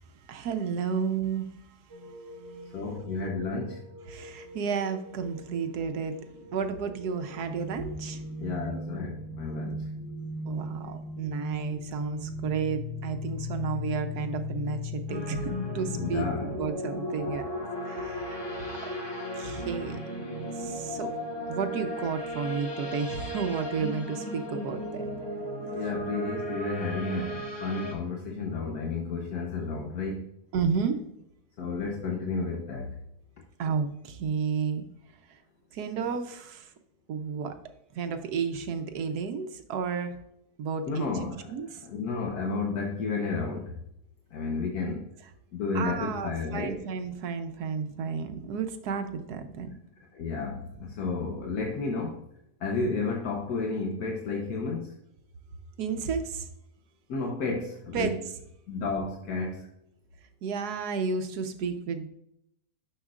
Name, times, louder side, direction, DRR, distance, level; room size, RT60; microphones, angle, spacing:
voice 1, 0.2-1.6 2.0-2.1 4.1-6.2 6.5-8.2 10.4-17.4 17.8-18.4 18.8-18.9 19.3-20.0 20.5-21.1 21.5-25.1 30.5-31.0 33.6-34.8 35.1-35.4 35.7-36.7 37.1-37.6 37.9-40.2 40.6-41.8 45.7-49.7 55.8-56.5 57.9-58.1 60.4-62.1, right 5 dB, 80° right, 7 dB, 1.3 m, -32 dB
sound 1, 1.9-16.3, left 2 dB, 15° right, 1.9 m, -38 dB
voice 2, 2.7-3.8 8.4-9.8 16.0-16.5 25.7-30.2 31.6-32.9 40.9-41.5 41.8-43.7 44.3-45.0 45.5-46.8 50.2-52.1 52.6-54.9 57.1-58.1 58.7-59.6, left 3 dB, 75° left, 1 dB, 1.4 m, -32 dB
sound 2, 15.1-27.9, equal, 15° left, 1.3 m, -35 dB
10.0 x 6.4 x 2.4 m, 0.75 s
omnidirectional pair, 1.7 m